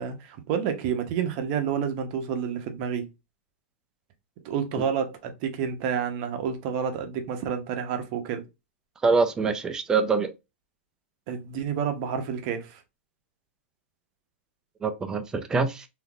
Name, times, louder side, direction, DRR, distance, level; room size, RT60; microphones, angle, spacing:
voice 1, 0.0-3.1 4.4-8.4 11.3-12.8, right 7 dB, 40° right, 0.6 m, -29 dB
voice 2, 9.0-10.3 14.8-15.9, right 4 dB, 10° right, 0.3 m, -24 dB
3.6 x 2.7 x 2.3 m
hypercardioid pair, 155°, 7 cm